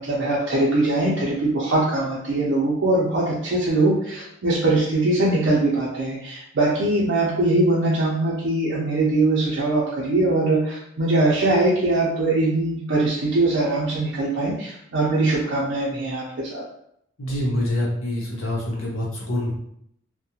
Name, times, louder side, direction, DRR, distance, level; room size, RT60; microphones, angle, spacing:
voice 1, 0.0-16.6, right 2 dB, 60° right, -6 dB, 0.5 m, -22 dB
voice 2, 17.2-19.5, left 1 dB, 80° left, -4 dB, 0.8 m, -26 dB
2.3 x 2.1 x 2.8 m, 0.73 s
head